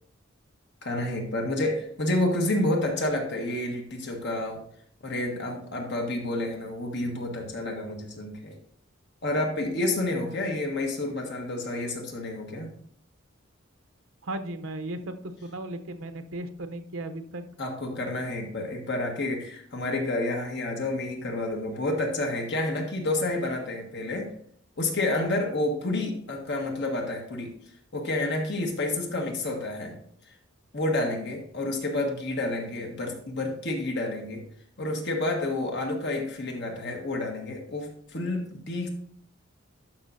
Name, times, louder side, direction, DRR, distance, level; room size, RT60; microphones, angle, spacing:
voice 1, 0.8-4.6 5.0-8.6 9.2-12.7 17.6-24.3 24.8-27.5 27.9-30.0 30.7-34.4 34.8-38.9, left 2 dB, 60° left, 2 dB, 1.4 m, -29 dB
voice 2, 14.2-17.4, right 1 dB, 75° right, 7 dB, 0.7 m, -36 dB
11.5 x 5.6 x 2.6 m, 0.64 s
head